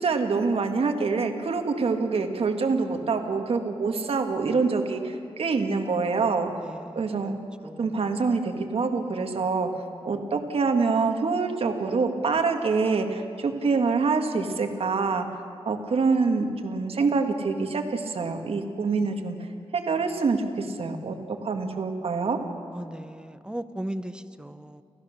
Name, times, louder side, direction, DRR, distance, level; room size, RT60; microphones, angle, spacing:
voice 1, 0.0-6.5 7.0-7.4 7.8-9.7 10.0-15.3 15.7-19.4 19.7-21.2 21.4-22.4, right 4 dB, 65° right, 5 dB, 1.8 m, -25 dB
voice 2, 6.6-7.3 7.6-8.3 9.8-10.3 22.7-24.8, right 1 dB, 10° right, 12 dB, 0.8 m, -38 dB
29.5 x 14.5 x 6.5 m, 2.5 s
wide cardioid pair, 105°, 11 cm